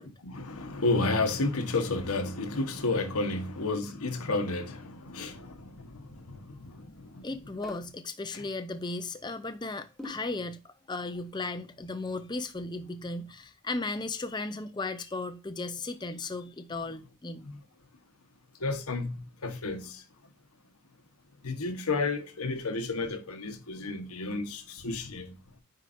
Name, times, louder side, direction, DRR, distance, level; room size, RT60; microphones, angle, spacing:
voice 1, 0.2-6.9 7.1-7.2 8.3-8.4 17.4-17.5 18.6-20.0 21.4-25.3, left 3 dB, 90° left, 1.2 m, -31 dB
voice 2, 7.2-17.5, left 3 dB, 20° left, 0.5 m, -36 dB
sound 1, 7.6-7.9 10.0-10.4, left 1 dB, ahead, 1.1 m, -43 dB
9.1 x 4.8 x 2.6 m
head